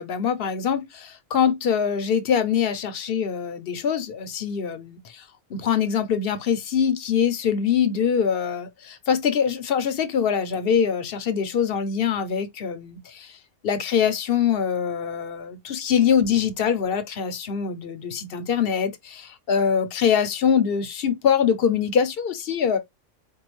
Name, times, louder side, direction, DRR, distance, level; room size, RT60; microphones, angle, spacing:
voice 1, 0.0-13.4 13.6-22.8, left 7 dB, 55° left, 0.8 m, -23 dB
4.5 x 2.2 x 3.0 m
omnidirectional pair, 1.3 m